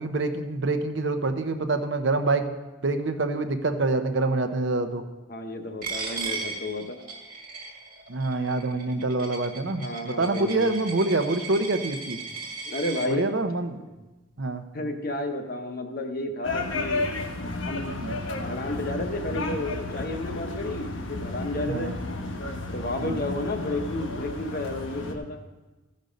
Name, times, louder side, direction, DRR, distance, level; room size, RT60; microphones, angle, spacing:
voice 1, 0.0-2.5 2.8-5.0 8.1-12.2 13.1-13.8 14.4-14.7 18.0-18.2 21.7-22.0 23.0-23.2, right 2 dB, 65° right, 8 dB, 0.8 m, -26 dB
voice 2, 5.3-7.0 9.8-10.7 12.7-13.2 14.7-17.1 17.6-21.9 22.7-25.4, left 2 dB, 50° left, 5 dB, 1.0 m, -32 dB
Coin (dropping), 5.8-13.1, right 4 dB, 40° right, 1.7 m, -37 dB
sound 1, 16.4-25.1, left 2 dB, 75° left, 1.1 m, -32 dB
15.0 x 5.3 x 5.2 m, 1.1 s
head